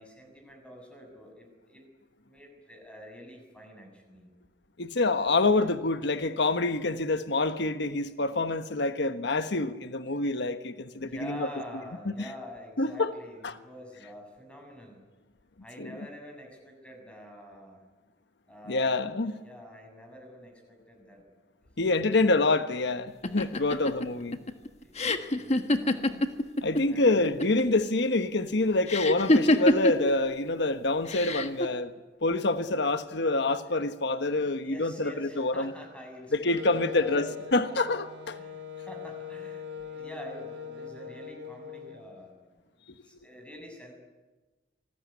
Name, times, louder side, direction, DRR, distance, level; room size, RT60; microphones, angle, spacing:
voice 1, 0.0-1.9 2.2-4.3 11.0-15.1 15.6-17.8 18.5-21.2 24.8-26.2 26.9-27.3 33.7-33.8 34.6-37.8 38.3-38.6 38.9-42.4 42.8-43.9, equal, 5° left, 6.9 m, -47 dB
voice 2, 4.8-11.5 12.8-13.1 13.4-13.5 15.8-15.9 18.7-19.3 21.8-24.4 26.6-31.9 32.2-35.7 36.4-37.2 37.5-38.1, left 2 dB, 65° left, 1.3 m, -26 dB
sound 1, 23.2-26.8 27.1-27.8 28.9-30.1 31.1-31.7, left 1 dB, 35° left, 1.5 m, -25 dB
Wind instrument woodwind instrument, 36.5-42.2, left 7 dB, 75° right, 2.7 m, -41 dB
27.0 x 20.0 x 9.6 m
head